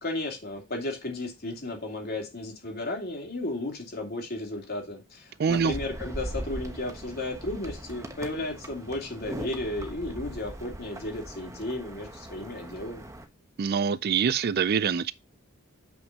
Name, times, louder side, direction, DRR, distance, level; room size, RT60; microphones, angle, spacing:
voice 1, 0.0-13.1, left 2 dB, 45° left, 2.8 m, -34 dB
voice 2, 5.4-5.7 13.6-15.1, right 6 dB, 45° right, 0.4 m, -25 dB
sound 1, 5.5-13.2, right 1 dB, 15° right, 1.1 m, -40 dB
7.3 x 5.8 x 4.1 m
head